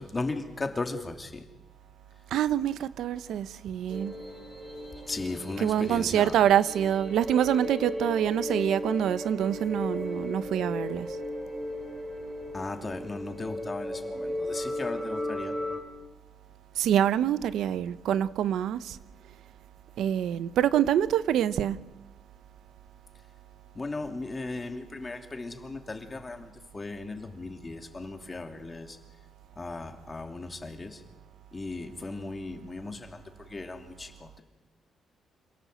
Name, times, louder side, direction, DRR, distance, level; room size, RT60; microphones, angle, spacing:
voice 1, 0.0-1.5 5.1-6.4 12.5-15.6 23.7-29.0 29.6-31.0 31.5-34.4, left 3 dB, 25° left, 5 dB, 2.6 m, -37 dB
voice 2, 2.3-4.1 5.6-11.1 16.8-19.0 20.0-21.8, right 10 dB, 85° right, 15 dB, 0.8 m, -26 dB
sound 1, 3.9-15.8, left 1 dB, 25° right, 5.2 m, -36 dB
27.0 x 17.5 x 7.9 m, 1.2 s
cardioid pair, 110°, 0 cm